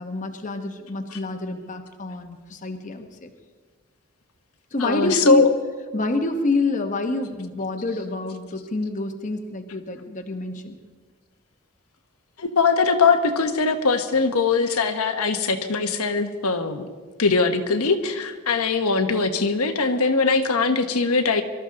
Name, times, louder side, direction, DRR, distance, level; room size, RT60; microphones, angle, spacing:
voice 1, 0.0-3.3 4.7-5.6 5.9-10.8, left 2 dB, 35° left, 5 dB, 1.0 m, -27 dB
voice 2, 4.8-5.5 12.4-16.9 17.2-21.4, left 4 dB, 85° left, 6 dB, 1.2 m, -21 dB
23.5 x 13.5 x 3.9 m, 1.5 s
head